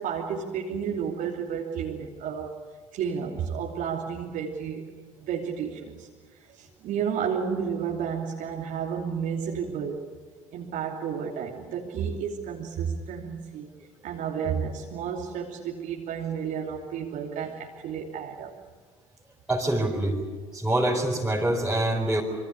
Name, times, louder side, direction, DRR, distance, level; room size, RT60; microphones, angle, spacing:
voice 1, 0.0-2.5 2.9-4.9 5.2-6.1 6.5-10.1 10.5-13.7 14.0-18.5, right 7 dB, 50° right, -1 dB, 2.9 m, -31 dB
voice 2, 19.5-20.2 20.5-22.2, right 1 dB, 5° right, -4 dB, 4.6 m, -25 dB
27.0 x 24.5 x 6.8 m, 1.5 s
figure-of-eight pair, 60°, 17 cm